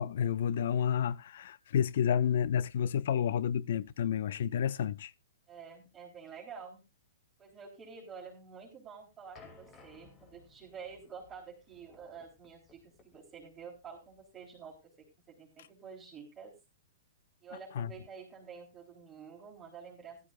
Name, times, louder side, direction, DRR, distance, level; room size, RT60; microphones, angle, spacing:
voice 1, 0.0-5.1 17.7-17.9, left 8 dB, 60° left, 0.6 m, -30 dB
voice 2, 5.5-6.8 7.4-16.5 17.4-20.2, right 6 dB, 15° right, 3.8 m, -49 dB
sound 1, 9.3-14.8, left 4 dB, 25° left, 2.4 m, -60 dB
15.0 x 12.5 x 2.5 m
hypercardioid pair, 120°, 0 cm